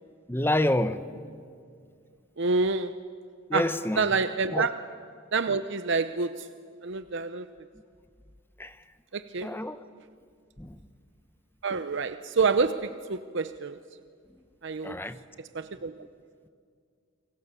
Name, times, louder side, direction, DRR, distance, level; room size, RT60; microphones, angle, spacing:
voice 1, 0.3-1.1 3.5-4.2 4.5-4.7 8.6-8.8 9.4-9.8 10.6-10.8 14.8-15.2 16.0-16.1, left 1 dB, 10° left, 1.0 m, -28 dB
voice 2, 2.4-2.9 3.5-3.6 4.0-4.8 5.3-6.5 6.8-7.5 9.1-9.5 11.6-13.8 14.6-15.0 15.5-15.9, right 4 dB, 65° right, 0.8 m, -27 dB
29.0 x 23.5 x 8.4 m
head